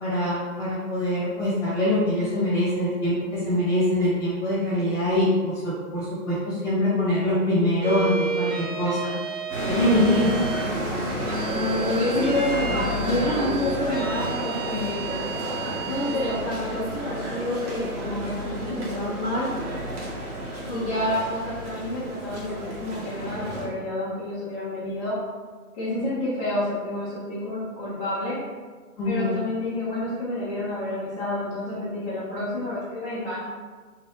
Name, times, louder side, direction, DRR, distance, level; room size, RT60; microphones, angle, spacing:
voice 1, 0.0-9.1 9.7-10.3 14.7-14.8 29.0-29.4, left 1 dB, 5° left, -9 dB, 1.5 m, -24 dB
sound 1, 7.8-10.7 11.3-16.4, right 5 dB, 30° right, 1.1 m, -33 dB
sound 2, 9.5-23.7, equal, 75° right, 1.3 m, -31 dB
voice 2, 11.5-15.2 15.9-19.5 20.7-25.2 25.7-28.4 29.0-33.4, left 1 dB, 25° left, -11 dB, 0.7 m, -29 dB
2.9 x 2.5 x 3.3 m, 1.4 s
hypercardioid pair, 135°, 45 cm